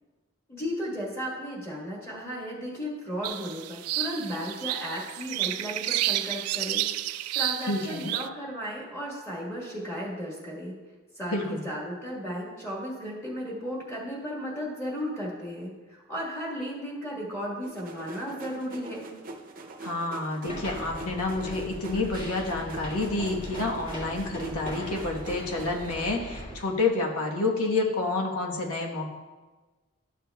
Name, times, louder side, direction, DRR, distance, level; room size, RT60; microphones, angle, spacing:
voice 1, 0.5-10.7 11.1-19.1, equal, 10° left, -5 dB, 1.5 m, -35 dB
sound 1, 3.2-8.3, right 14 dB, 90° right, 0.3 m, -31 dB
voice 2, 7.7-8.2 11.3-11.6 19.8-29.1, left 3 dB, 90° left, 0 dB, 1.3 m, -29 dB
sound 2, 17.6-25.9, right 2 dB, 40° right, 0.6 m, -43 dB
sound 3, 20.4-26.6, equal, 35° left, 1.9 m, -39 dB
12.0 x 6.6 x 2.3 m, 1.3 s
head